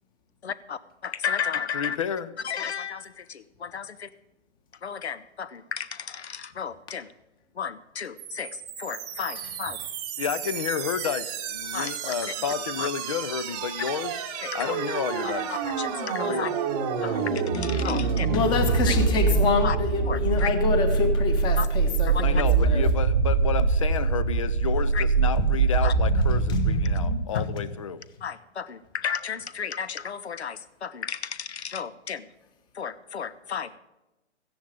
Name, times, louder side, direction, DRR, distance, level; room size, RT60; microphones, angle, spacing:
voice 1, 0.4-2.0 2.4-4.1 4.8-7.1 7.6-9.8 11.7-12.1 12.8-12.9 14.4-14.8 15.2-16.5 17.0-18.3 18.9-19.0 19.6-19.8 20.1-20.5 21.5-21.7 22.0-22.2 24.9-25.0 25.8-25.9 27.3-27.4 28.2-32.3 32.7-33.8, left 7 dB, 65° left, 15 dB, 1.0 m, -33 dB
voice 2, 1.7-2.3 10.2-14.1 14.5-15.5 16.2-16.5 22.2-28.0, left 7 dB, 30° left, 14 dB, 0.6 m, -31 dB
sound 1, 8.2-27.2, right 4 dB, 20° right, 1.0 m, -25 dB
voice 3, 18.3-22.8 26.0-26.7 27.3-27.7, left 4 dB, 15° left, 7 dB, 1.3 m, -27 dB
14.5 x 10.0 x 5.1 m, 1.0 s
hypercardioid pair, 150°, 35 cm